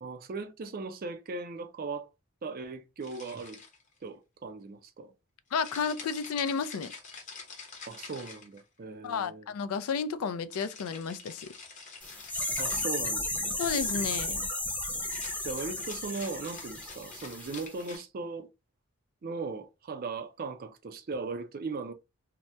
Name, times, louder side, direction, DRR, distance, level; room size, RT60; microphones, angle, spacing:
voice 1, 0.0-2.1 2.4-3.6 4.0-5.1 7.9-9.5 12.6-13.6 15.4-18.5 19.2-21.9, right 4 dB, 40° right, 0.4 m, -38 dB
sound 1, 3.0-4.0 5.6-8.8 10.5-13.0 15.0-18.0, left 4 dB, 35° left, 0.9 m, -47 dB
voice 2, 5.5-6.9 9.0-11.5 13.6-14.5, left 6 dB, 85° left, 0.4 m, -32 dB
sound 2, 12.0-17.7 17.9-18.0, left 1 dB, 5° left, 0.6 m, -34 dB
2.8 x 2.1 x 3.2 m
head